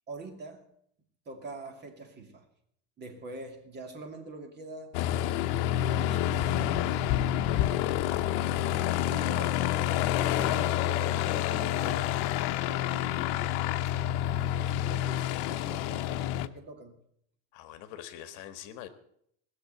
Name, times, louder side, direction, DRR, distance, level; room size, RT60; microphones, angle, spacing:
voice 1, 0.1-0.6 1.3-2.5 3.0-5.0 5.8-7.4 9.1-12.2 12.6-13.6 14.4-17.0, right 3 dB, 30° right, 4 dB, 2.4 m, -44 dB
Aircraft, 4.9-16.5, left 12 dB, 75° left, 0.8 m, -28 dB
voice 2, 17.5-18.9, left 11 dB, 60° left, 10 dB, 1.5 m, -44 dB
19.5 x 6.8 x 7.9 m, 0.70 s
cardioid pair, 150°, 34 cm